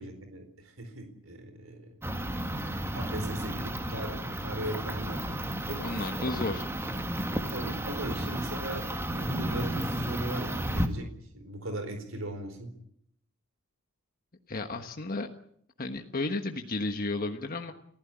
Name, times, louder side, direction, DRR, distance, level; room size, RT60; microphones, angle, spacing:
voice 1, 0.0-2.0 2.9-5.8 7.3-11.1 11.3-12.7, right 1 dB, 80° right, 7 dB, 4.3 m, -38 dB
sound 1, 2.0-10.9, right 1 dB, 10° right, 1.8 m, -33 dB
voice 2, 5.8-6.7 14.5-15.3 15.8-17.7, left 2 dB, 45° left, 5 dB, 1.3 m, -33 dB
29.5 x 15.5 x 8.7 m, 0.72 s
head